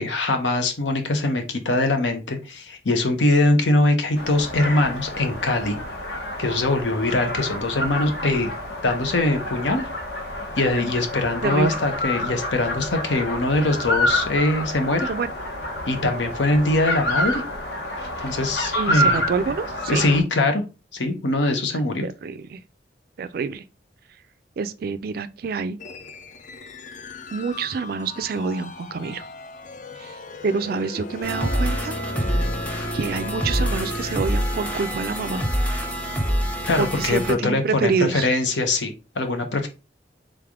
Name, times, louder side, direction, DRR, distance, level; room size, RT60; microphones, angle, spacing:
voice 1, 0.0-5.8 6.4-8.5 8.8-9.9 10.6-15.1 15.9-17.4 18.2-19.2 19.9-20.6 20.9-22.1 36.6-39.7, left 2 dB, 80° left, 0.9 m, -22 dB
sound 1, 4.2-20.2, left 1 dB, 65° left, 1.1 m, -28 dB
voice 2, 11.4-11.8 15.1-15.3 18.8-20.0 21.7-22.6 23.2-23.6 24.6-25.8 27.3-29.3 30.0-30.2 30.4-32.0 32.9-35.5 36.8-38.3, right 5 dB, 55° right, 0.4 m, -27 dB
sound 2, 25.8-38.1, left 1 dB, 40° left, 0.5 m, -38 dB
sound 3, 31.2-37.3, equal, 10° left, 0.7 m, -26 dB
3.6 x 3.4 x 3.5 m
head